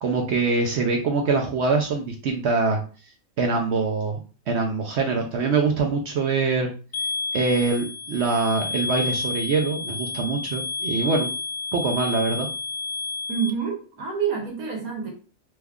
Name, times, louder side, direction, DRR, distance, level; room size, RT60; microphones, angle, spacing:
voice 1, 0.0-2.8 3.4-4.2 4.5-6.7 7.3-11.3 11.7-12.5, right 4 dB, 65° right, 2 dB, 0.7 m, -24 dB
sound 1, 6.9-13.5, left 3 dB, 60° left, 0.9 m, -30 dB
voice 2, 13.3-15.1, right 7 dB, 80° right, 0 dB, 1.4 m, -27 dB
3.0 x 2.3 x 3.5 m, 0.36 s
omnidirectional pair, 1.5 m